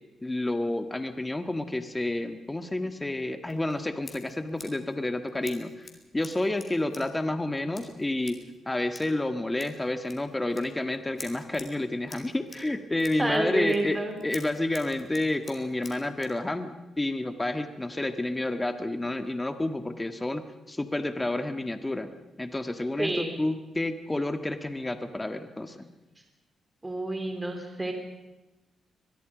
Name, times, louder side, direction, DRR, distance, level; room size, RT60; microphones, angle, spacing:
voice 1, 0.2-5.9 6.1-8.4 8.7-22.1 22.4-25.9, left 2 dB, 20° left, 8 dB, 1.7 m, -30 dB
Scissors, 3.4-16.4, left 3 dB, 45° left, 4.6 m, -50 dB
voice 2, 13.2-14.1 23.0-23.3 26.8-27.9, right 2 dB, 20° right, 4 dB, 3.5 m, -29 dB
23.0 x 22.0 x 5.2 m, 1.0 s
supercardioid pair, 55°, 0 cm